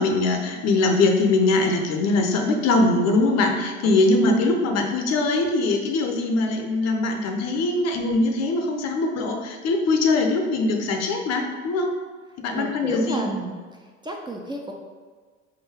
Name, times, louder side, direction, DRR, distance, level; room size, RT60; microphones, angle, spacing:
voice 1, 0.0-11.9 12.4-13.2, left 2 dB, 45° left, 3 dB, 0.7 m, -22 dB
voice 2, 12.5-13.6 14.0-14.7, right 2 dB, 15° right, 0 dB, 0.5 m, -31 dB
3.9 x 2.6 x 4.3 m, 1.5 s
hypercardioid pair, 75°, 35 cm